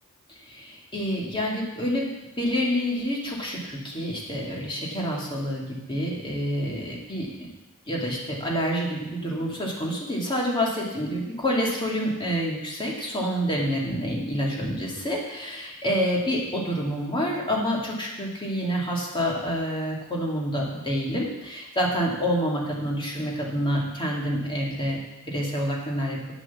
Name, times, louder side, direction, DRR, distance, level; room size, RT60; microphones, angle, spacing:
voice 1, 0.4-2.1 2.4-7.5 7.9-25.0 25.2-26.2, equal, 20° left, -3 dB, 2.4 m, -28 dB
9.4 x 8.0 x 7.2 m, 1.0 s
head